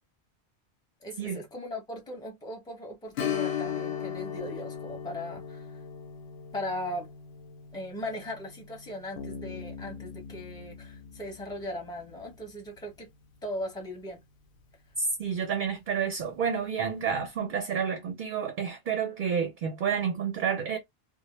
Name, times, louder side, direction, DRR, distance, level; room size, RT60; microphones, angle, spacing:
voice 1, 1.0-5.7 6.5-7.1 7.7-13.1 13.4-14.2, left 1 dB, 5° left, 0.8 m, -38 dB
Strum, 3.1-12.3 12.7-12.8 15.3-15.5 15.9-16.0, left 9 dB, 85° left, 0.8 m, -38 dB
Bass guitar, 9.2-12.7, left 5 dB, 55° left, 0.6 m, -44 dB
voice 2, 15.0-20.8, right 7 dB, 60° right, 0.6 m, -30 dB
2.1 x 2.0 x 3.0 m
omnidirectional pair, 1.0 m